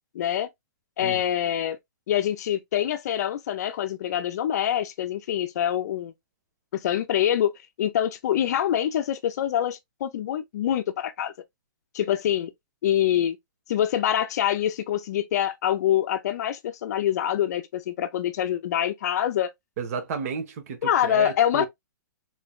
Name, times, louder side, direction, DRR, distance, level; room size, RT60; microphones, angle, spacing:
voice 1, 0.1-0.5 1.0-1.8 2.1-6.1 6.7-7.5 7.8-11.3 11.9-12.5 12.8-13.4 13.7-19.5 20.8-21.7, left 10 dB, 50° left, 0.6 m, -25 dB
voice 2, 19.8-21.7, right 6 dB, 45° right, 1.5 m, -32 dB
3.8 x 3.2 x 2.4 m
hypercardioid pair, 150°, 11 cm